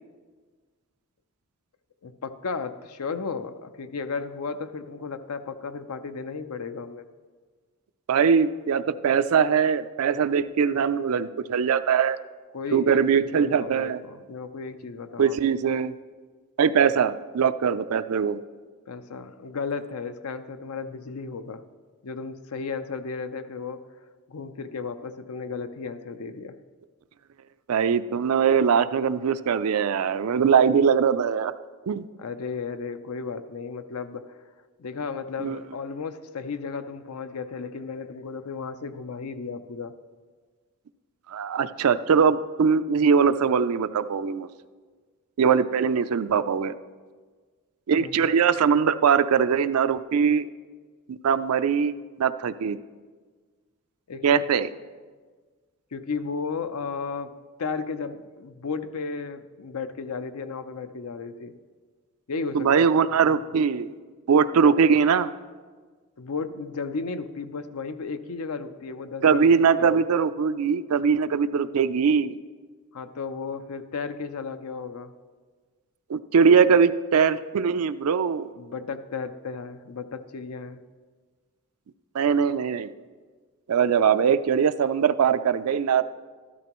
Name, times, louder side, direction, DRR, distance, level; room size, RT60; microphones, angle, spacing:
voice 1, 2.0-7.1 12.5-15.4 18.9-21.6 22.0-23.8 24.3-26.6 32.2-34.4 34.8-39.9 48.0-48.2 54.1-54.4 55.9-61.6 62.3-62.9 63.3-63.4 66.2-69.4 69.8-70.0 72.9-75.1 78.5-80.8, left 4 dB, 85° left, 10 dB, 0.6 m, -34 dB
voice 2, 8.1-12.2 12.7-14.0 15.2-15.9 16.6-18.4 27.7-31.5 31.9-32.0 35.4-35.6 41.3-44.5 45.4-46.7 47.9-50.5 51.1-51.9 52.2-52.8 54.2-54.7 62.5-63.9 64.3-65.3 69.2-72.4 76.1-78.5 82.1-82.9 83.7-86.0, right 6 dB, 80° right, 13 dB, 0.4 m, -21 dB
13.5 x 12.5 x 3.0 m, 1.5 s
head